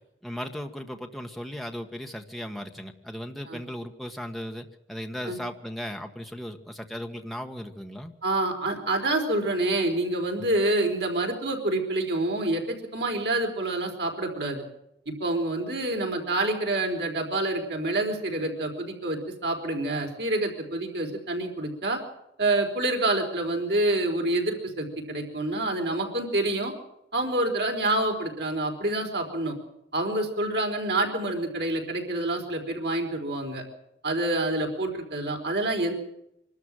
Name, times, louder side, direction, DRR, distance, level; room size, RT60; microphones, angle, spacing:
voice 1, 0.0-8.1, equal, ahead, 3 dB, 1.5 m, -37 dB
voice 2, 8.2-14.6 15.1-22.0 22.4-26.7 27.1-29.6 29.9-33.6 34.0-35.9, right 2 dB, 70° right, 2 dB, 4.3 m, -27 dB
25.0 x 13.0 x 9.0 m, 0.81 s
head